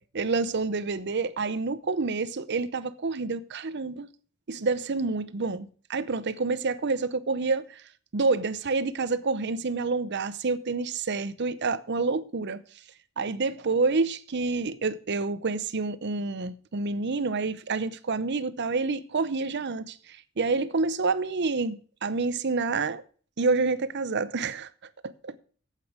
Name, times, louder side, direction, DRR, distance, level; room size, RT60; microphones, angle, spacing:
voice 1, 0.0-4.1 4.5-7.8 8.1-12.6 13.2-23.0 23.4-24.7 25.0-25.3, right 3 dB, 55° right, 0.7 m, -28 dB
8.7 x 8.4 x 6.1 m
head